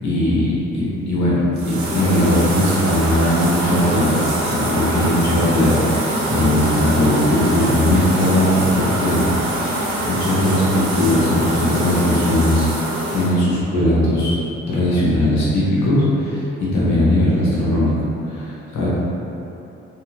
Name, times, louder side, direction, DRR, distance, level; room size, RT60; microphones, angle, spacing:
voice 1, 0.0-4.1 4.5-9.2 9.6-12.6 13.1-14.4 14.7-17.9 18.2-18.9, left 1 dB, 60° left, -8 dB, 1.5 m, -18 dB
sound 1, 1.6-13.3, right 1 dB, 70° right, 0.8 m, -24 dB
3.5 x 3.3 x 3.4 m, 2.9 s
hypercardioid pair, 45°, 31 cm